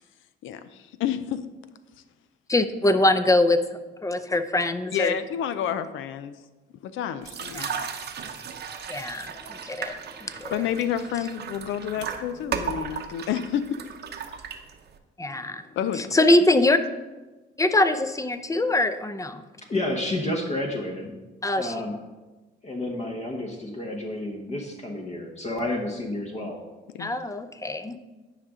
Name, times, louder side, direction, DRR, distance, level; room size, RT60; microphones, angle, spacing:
voice 1, 0.4-1.5 4.9-6.4 6.8-7.7 10.5-13.8 15.8-16.1 27.0-27.1, left 9 dB, 80° left, 12 dB, 0.4 m, -29 dB
voice 2, 2.5-5.1 7.5-7.9 8.9-10.0 10.2-10.5 15.2-15.6 16.0-16.8 17.6-19.4 21.4-21.7 27.0-28.0, left 2 dB, 15° left, 10 dB, 0.5 m, -23 dB
sound 1, 7.2-15.0, right 7 dB, 55° right, 0.8 m, -35 dB
voice 3, 19.7-21.1 21.6-22.0 22.6-26.6, left 1 dB, 35° left, 1 dB, 1.0 m, -30 dB
10.0 x 5.1 x 3.6 m, 1.2 s
cardioid pair, 90°, 20 cm